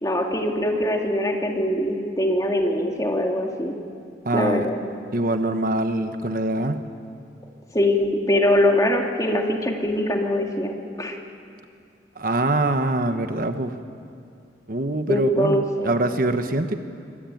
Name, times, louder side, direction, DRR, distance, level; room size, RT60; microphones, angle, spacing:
voice 1, 0.0-3.8 4.3-4.8 7.7-11.1 15.1-16.2, left 1 dB, 20° left, 1 dB, 2.3 m, -23 dB
voice 2, 4.2-4.7 5.1-6.8 12.2-13.7 14.7-16.8, right 2 dB, 50° right, 8 dB, 1.2 m, -24 dB
25.0 x 24.0 x 9.2 m, 2.4 s
head